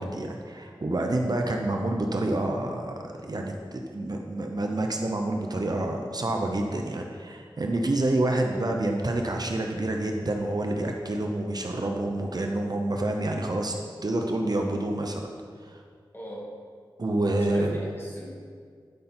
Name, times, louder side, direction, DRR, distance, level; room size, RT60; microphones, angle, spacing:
voice 1, 0.0-13.7 14.0-15.3 15.7-15.8 17.0-17.8, right 1 dB, 50° right, 2 dB, 0.7 m, -28 dB
voice 2, 16.1-16.5 17.4-18.3, equal, 25° left, -4 dB, 2.2 m, -40 dB
11.5 x 5.5 x 4.4 m, 2.1 s
wide cardioid pair, 70°, 9 cm